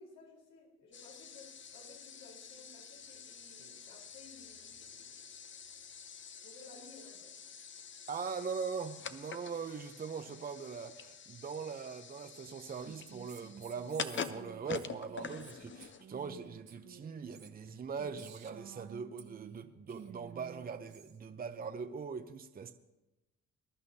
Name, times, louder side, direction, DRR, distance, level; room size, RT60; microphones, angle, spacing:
voice 1, 0.0-5.4 6.4-7.3, left 3 dB, 85° left, 4.2 m, -57 dB
sound 1, 0.9-16.3, left 6 dB, 40° left, 0.8 m, -47 dB
voice 2, 8.1-22.7, right 5 dB, 30° right, 0.7 m, -41 dB
Female speech woman speaking, 12.8-19.6 19.9-21.2, right 7 dB, 65° right, 1.4 m, -53 dB
21.0 x 11.0 x 2.8 m
cardioid pair, 90°, 30 cm